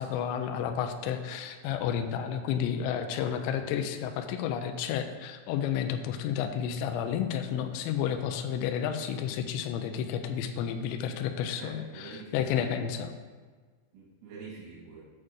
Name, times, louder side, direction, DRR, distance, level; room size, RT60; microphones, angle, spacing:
voice 1, 0.0-13.1, left 8 dB, 85° left, 7 dB, 2.6 m, -31 dB
voice 2, 3.2-3.7 11.6-12.8 13.9-15.0, right 4 dB, 85° right, -6 dB, 4.0 m, -47 dB
8.5 x 4.4 x 6.3 m, 1.5 s
omnidirectional pair, 5.6 m